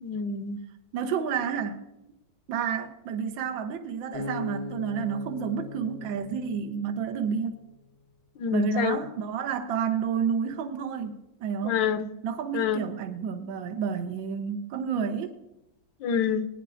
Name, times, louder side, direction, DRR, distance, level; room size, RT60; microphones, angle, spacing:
voice 1, 0.0-0.6 8.4-9.0 11.6-12.1 12.5-12.8 16.0-16.5, left 7 dB, 70° left, 1.3 m, -27 dB
voice 2, 0.9-1.8 2.5-7.6 8.5-11.8 12.2-15.4, right 7 dB, 70° right, 1.7 m, -30 dB
Acoustic guitar, 4.1-7.4, left 1 dB, 90° left, 2.2 m, -39 dB
21.0 x 9.9 x 2.5 m
omnidirectional pair, 2.2 m